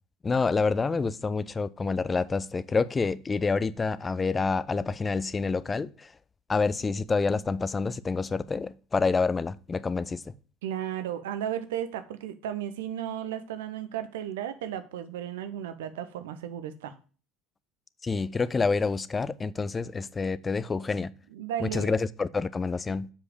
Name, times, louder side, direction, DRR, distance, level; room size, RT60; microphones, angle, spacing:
voice 1, 0.2-6.1 6.5-10.3 18.0-21.1 21.6-23.1, left 4 dB, 25° left, 0.5 m, -28 dB
voice 2, 10.6-17.0 21.3-22.0, right 10 dB, 70° right, 0.7 m, -34 dB
7.4 x 4.9 x 4.9 m
figure-of-eight pair, 65°, 0 cm